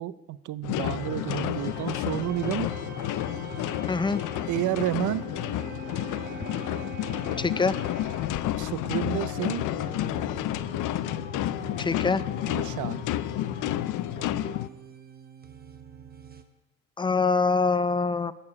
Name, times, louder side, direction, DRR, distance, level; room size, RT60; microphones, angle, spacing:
voice 1, 0.0-2.7 4.5-5.2 8.6-9.7 12.5-13.1, right 14 dB, 75° right, 17 dB, 0.6 m, -30 dB
sound 1, 0.6-14.7, left 14 dB, 85° left, 0.5 m, -31 dB
sound 2, 0.7-16.4, right 5 dB, 30° right, 1.1 m, -43 dB
voice 2, 3.9-4.2 7.4-7.7 11.8-12.2 17.0-18.3, left 4 dB, 15° left, 15 dB, 0.4 m, -24 dB
12.0 x 6.7 x 8.5 m, 1.1 s
cardioid pair, 90°, 30 cm